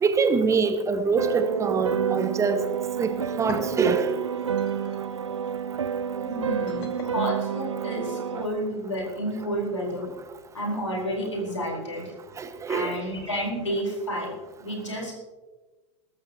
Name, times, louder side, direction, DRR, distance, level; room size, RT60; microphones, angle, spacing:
voice 1, 0.0-2.7 3.0-4.2 12.4-13.0, right 5 dB, 20° right, 10 dB, 1.0 m, -24 dB
sound 1, 1.2-8.5, right 8 dB, 75° right, 0.5 m, -29 dB
sound 2, 3.3-8.3, left 2 dB, 50° left, 2.4 m, -43 dB
voice 2, 6.2-10.1 10.5-12.1 12.7-15.1, equal, 80° left, -1 dB, 4.7 m, -31 dB
21.0 x 13.5 x 3.0 m, 1.2 s
figure-of-eight pair, 85°, 16 cm